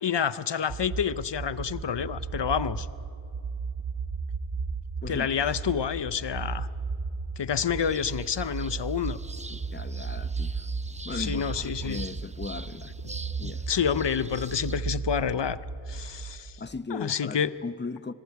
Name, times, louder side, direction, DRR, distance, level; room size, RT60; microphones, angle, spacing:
voice 1, 0.0-2.9 5.1-6.7 7.4-9.2 11.1-12.0 13.4-15.6 15.9-16.5 16.9-17.5, left 7 dB, 75° left, 0.7 m, -28 dB
sound 1, 0.7-16.7, right 4 dB, 85° right, 1.1 m, -35 dB
voice 2, 5.0-5.5 9.5-10.7 11.0-12.9 13.4-13.7 16.0-16.1 16.6-18.1, left 4 dB, 25° left, 0.6 m, -38 dB
sound 2, 7.8-14.8, right 2 dB, 15° right, 0.6 m, -45 dB
26.0 x 22.5 x 4.7 m
wide cardioid pair, 50°, 43 cm